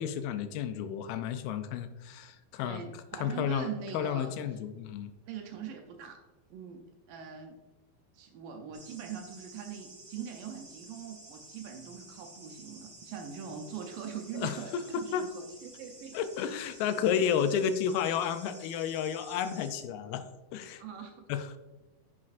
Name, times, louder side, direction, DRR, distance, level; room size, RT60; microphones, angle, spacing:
voice 1, 0.0-2.8 3.2-5.1 14.3-14.6 15.1-15.2 16.1-20.2 20.5-20.8 21.3-21.6, left 8 dB, 85° left, 9 dB, 2.4 m, -31 dB
voice 2, 2.6-4.6 5.3-6.2 6.5-6.8 7.1-7.5 8.1-16.2 20.8-21.2, right 7 dB, 75° right, 3 dB, 2.1 m, -42 dB
sound 1, 8.7-19.8, right 2 dB, 35° right, 3.1 m, -52 dB
9.8 x 6.3 x 2.5 m, 1.1 s
omnidirectional pair, 4.4 m